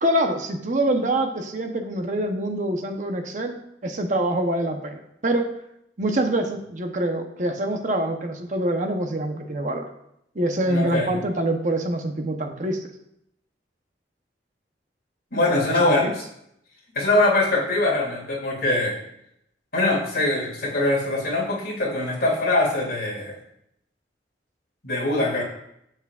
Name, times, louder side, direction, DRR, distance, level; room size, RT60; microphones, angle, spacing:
voice 1, 0.0-5.5 6.0-9.9 10.3-12.8 16.0-16.2, right 1 dB, 45° right, 4 dB, 0.9 m, -25 dB
voice 2, 10.6-11.2 15.3-16.2 16.9-19.0 19.7-23.4 24.8-25.4, left 2 dB, 55° left, -3 dB, 2.7 m, -22 dB
10.5 x 8.3 x 2.4 m, 0.77 s
head